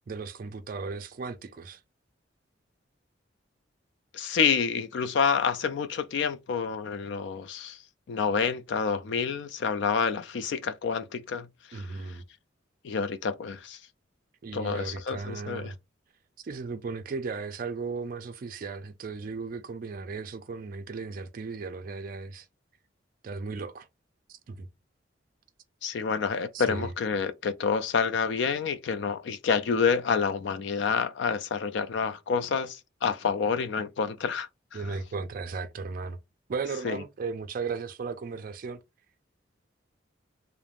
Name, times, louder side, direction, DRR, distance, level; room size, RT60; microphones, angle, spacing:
voice 1, 0.1-1.8 11.7-12.2 14.4-15.8 16.4-22.5 23.2-23.9 24.3-24.7 26.5-26.9 34.7-36.2 36.5-38.8, right 4 dB, 50° right, 0.3 m, -36 dB
voice 2, 4.1-7.8 8.1-11.8 12.8-13.8 14.5-15.7 25.8-34.5 36.8-37.0, left 6 dB, 65° left, 0.3 m, -28 dB
2.4 x 2.0 x 3.2 m
head